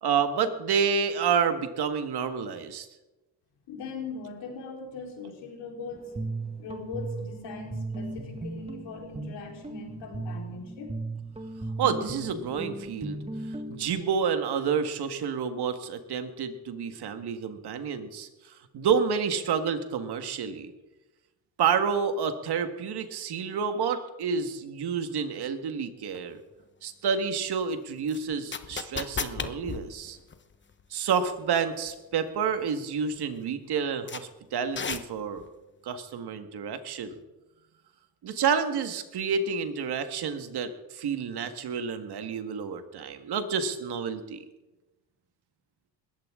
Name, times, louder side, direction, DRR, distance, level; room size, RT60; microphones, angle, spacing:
voice 1, 0.0-2.9 11.8-13.2 13.7-20.7 21.6-26.4 26.8-30.2 30.9-35.4 35.8-37.2 38.2-44.4, right 6 dB, 65° right, 8 dB, 1.9 m, -29 dB
voice 2, 3.7-6.1 6.6-11.0, left 4 dB, 80° left, 0 dB, 4.4 m, -40 dB
Guitar, 5.9-13.9, right 2 dB, 15° right, 1.7 m, -37 dB
sound 1, 26.1-26.2 28.1-30.8 31.1-31.2 31.9-32.1 32.5-32.6 33.1-33.2 34.1-34.2 34.7-35.5, left 5 dB, 25° left, 1.0 m, -34 dB
20.5 x 15.0 x 3.8 m, 1.1 s
cardioid pair, 95°, 42 cm